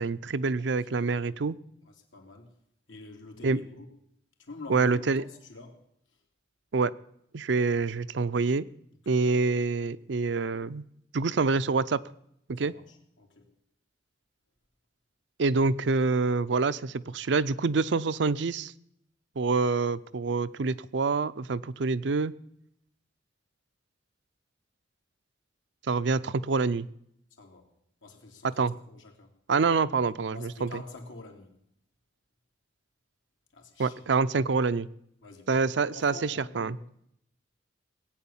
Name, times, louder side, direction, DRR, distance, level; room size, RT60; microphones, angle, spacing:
voice 1, 0.0-1.5 3.4-3.6 4.7-5.2 6.7-6.9 7.3-8.7 9.1-10.8 11.1-12.0 12.5-12.7 15.4-18.7 19.4-22.3 25.9-26.9 28.6-28.7 29.5-30.7 33.8-34.9 35.5-36.8, right 4 dB, 65° right, 15 dB, 0.5 m, -26 dB
voice 2, 0.6-1.4 1.8-2.5 2.9-3.9 4.4-5.8 6.1-6.2 9.1-9.2 12.6-13.5 27.4-27.7 28.0-29.3 30.3-31.6 33.5-34.0 35.2-35.6 35.9-37.1, left 2 dB, 85° left, 2 dB, 2.9 m, -47 dB
18.5 x 8.8 x 7.2 m, 0.74 s
head